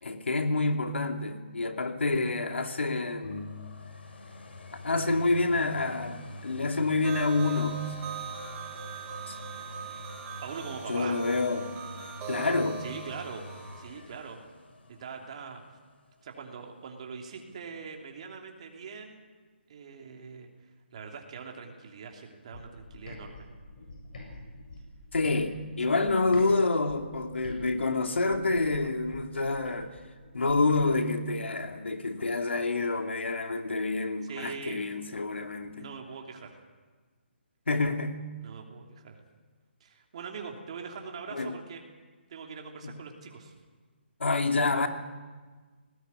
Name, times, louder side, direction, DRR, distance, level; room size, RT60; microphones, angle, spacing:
voice 1, 0.0-3.5 4.8-7.9 9.3-9.5 10.9-11.7 12.3-12.8 25.1-30.0 30.3-35.9 37.7-38.2 41.3-41.6 42.8-43.0 44.2-44.9, left 3 dB, 90° left, 5 dB, 2.7 m, -28 dB
sound 1, 3.2-16.9 17.4-17.5, left 1 dB, 65° left, 5.3 m, -46 dB
sound 2, 7.0-13.9, right 6 dB, 15° right, 1.9 m, -41 dB
voice 2, 10.4-11.2 12.8-13.5 13.8-14.4 14.9-15.6 16.2-19.2 19.7-20.5 20.9-23.5 25.9-26.0 34.2-34.9 35.8-36.6 38.4-39.2 39.8-41.8 42.3-43.6, right 5 dB, 30° right, 2 dB, 3.0 m, -42 dB
sound 3, 22.5-26.5 26.9-30.9, left 2 dB, 50° left, 7.7 m, -46 dB
19.0 x 18.0 x 9.7 m, 1.4 s
hypercardioid pair, 170°, 6 cm